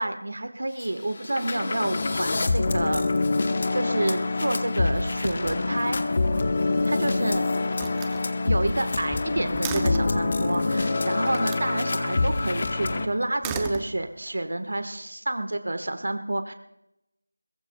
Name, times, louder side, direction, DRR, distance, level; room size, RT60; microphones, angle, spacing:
voice 1, 0.0-6.0 6.9-7.5 8.4-16.5, right 1 dB, 60° right, 8 dB, 1.3 m, -29 dB
sound 1, 0.8-0.9 1.2-13.1, left 3 dB, 30° left, 0.9 m, -26 dB
Slam, 6.7-7.3 7.7-10.2 11.3-11.7 13.2-14.4, right 6 dB, 5° right, 0.5 m, -36 dB
22.0 x 22.0 x 2.3 m, 0.86 s
figure-of-eight pair, 170°, 0 cm